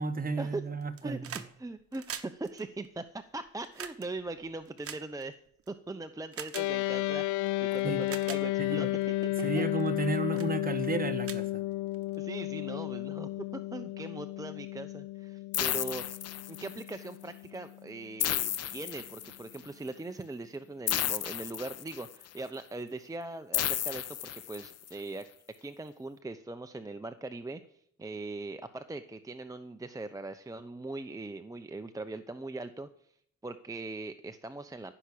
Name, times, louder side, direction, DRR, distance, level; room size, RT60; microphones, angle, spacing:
voice 1, 0.0-1.2 7.8-8.0 8.6-8.9 9.4-11.5, right 4 dB, 30° right, 8 dB, 1.4 m, -33 dB
sound 1, 0.8-1.5 1.8-5.7 6.3-6.7 7.5-7.6 8.0-8.4 9.0-9.2 9.8-10.1 10.4-10.5 10.9-11.0 11.2-12.2 13.3-13.4, right 8 dB, 50° right, 1.2 m, -43 dB
voice 2, 1.0-5.4 5.7-9.7 12.2-16.0 16.5-25.3 25.6-32.9 33.4-34.9, right 2 dB, 10° right, 8 dB, 0.7 m, -40 dB
sound 2, 6.5-18.1, left 17 dB, 80° left, 0.5 m, -33 dB
sound 3, 15.5-16.9 18.2-19.6 20.9-22.2 23.5-24.9, left 10 dB, 55° left, 0.8 m, -33 dB
15.0 x 6.1 x 8.5 m, 0.66 s
cardioid pair, 90°, 30 cm